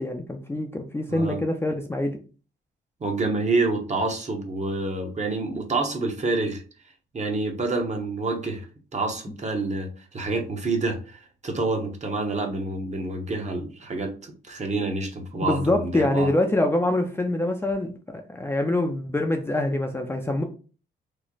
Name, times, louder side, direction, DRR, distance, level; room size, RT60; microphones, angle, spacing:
voice 1, 0.0-2.2 15.3-20.4, left 1 dB, 10° left, 3 dB, 0.5 m, -25 dB
voice 2, 1.1-1.4 3.0-6.6 7.1-8.7 8.9-16.3, right 3 dB, 35° right, 3 dB, 0.9 m, -28 dB
3.1 x 2.1 x 3.9 m, 0.37 s
cardioid pair, 90°, 20 cm